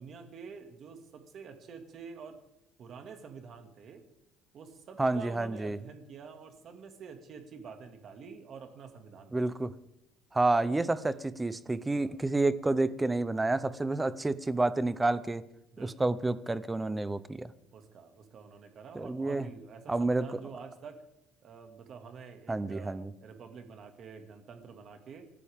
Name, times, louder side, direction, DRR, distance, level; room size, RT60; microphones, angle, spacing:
voice 1, 0.0-2.4 2.8-4.0 4.5-9.5 12.0-12.2 15.7-16.1 17.7-21.0 21.4-25.3, right 5 dB, 40° right, 2.1 m, -48 dB
voice 2, 5.0-5.8 9.3-9.7 10.3-15.4 15.8-17.5 18.9-19.5 19.9-20.4 22.5-23.1, right 2 dB, 10° right, 0.6 m, -29 dB
28.0 x 13.5 x 3.6 m
cardioid pair, 160°, 0 cm